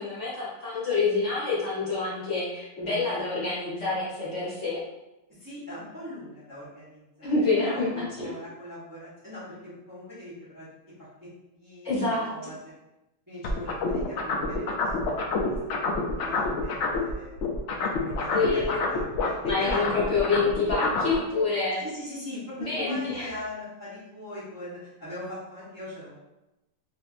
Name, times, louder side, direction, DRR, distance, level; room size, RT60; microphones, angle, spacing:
voice 1, 0.0-4.8 7.2-8.3 11.8-12.3 18.3-18.7 19.5-21.8 22.6-23.3, left 3 dB, 50° left, -8 dB, 1.1 m, -27 dB
voice 2, 5.3-7.3 7.6-10.7 11.5-12.7 13.3-14.6 15.0-17.4 17.8-20.2 21.8-26.1, left 1 dB, 15° right, -11 dB, 0.8 m, -41 dB
sound 1, 13.4-17.1 17.4-21.1, left 3 dB, 80° left, 0.6 m, -28 dB
3.5 x 2.6 x 2.5 m, 0.95 s
omnidirectional pair, 1.8 m